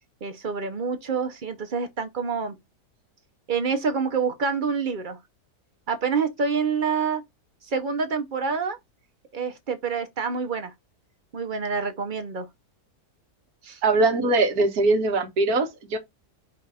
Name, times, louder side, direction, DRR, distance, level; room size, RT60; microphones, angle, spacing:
voice 1, 0.2-2.6 3.5-5.2 5.9-7.2 7.6-8.8 9.3-10.7 11.3-12.4 13.6-13.8, right 5 dB, 50° right, 0.6 m, -27 dB
voice 2, 13.8-16.0, right 3 dB, 65° right, 1.5 m, -21 dB
5.3 x 2.5 x 4.1 m
omnidirectional pair, 1.7 m